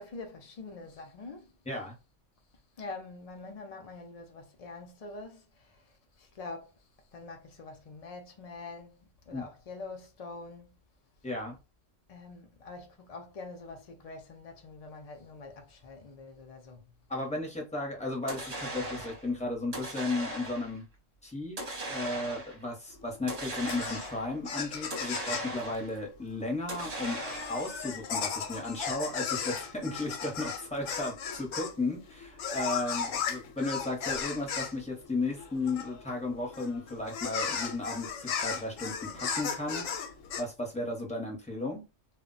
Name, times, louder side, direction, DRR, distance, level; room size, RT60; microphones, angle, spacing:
voice 1, 0.0-1.5 2.8-5.9 6.2-6.7 7.1-10.7 12.1-16.9, left 3 dB, 70° left, 0.3 m, -45 dB
voice 2, 11.2-11.5 17.1-20.9 21.2-21.6 21.9-27.2 27.5-39.9 40.4-41.8, left 2 dB, 10° left, 0.5 m, -34 dB
sound 1, 18.3-19.2 19.7-20.8 21.6-22.6 23.3-24.3 24.9-26.0 26.7-27.8, right 1 dB, 40° right, 0.7 m, -38 dB
sound 2, 22.9-40.4, left 6 dB, 90° left, 1.0 m, -36 dB
2.1 x 2.1 x 3.8 m
omnidirectional pair, 1.3 m